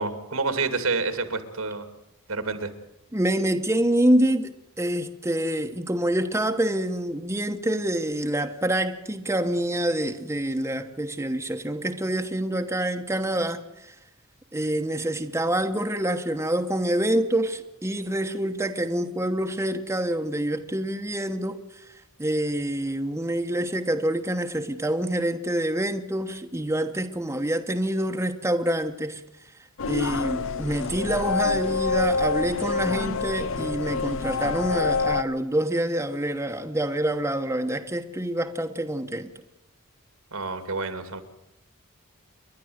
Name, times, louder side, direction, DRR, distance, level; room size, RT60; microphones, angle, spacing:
voice 1, 0.0-1.9 2.3-2.7 40.3-41.2, right 3 dB, 85° right, 2.6 m, -28 dB
voice 2, 3.1-13.9 14.5-21.6 22.2-29.2 29.9-39.3, right 1 dB, 15° right, 1.1 m, -26 dB
sound 1, 29.8-35.2, left 4 dB, 65° left, 0.6 m, -26 dB
29.0 x 11.5 x 8.0 m
head